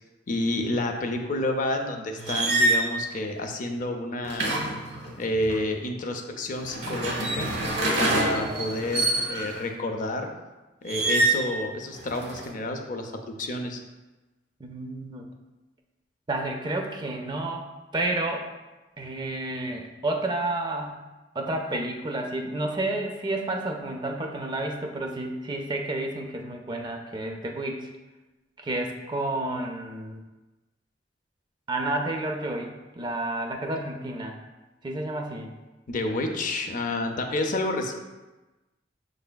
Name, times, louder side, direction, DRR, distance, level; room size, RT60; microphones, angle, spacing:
voice 1, 0.3-4.6 5.2-7.5 8.0-10.3 10.8-13.8 35.9-37.9, left 2 dB, 45° left, 4 dB, 0.5 m, -29 dB
sound 1, 2.2-2.9 4.2-5.6 6.6-9.6 10.9-11.5 11.9-12.5, right 2 dB, 65° right, 0.9 m, -26 dB
voice 2, 14.6-15.3 16.3-17.6 17.9-18.5 19.0-21.0 21.3-27.9 28.6-30.2 31.7-34.4 34.8-35.5, right 2 dB, 25° right, 3 dB, 0.4 m, -30 dB
6.6 x 3.2 x 2.2 m, 1.1 s
head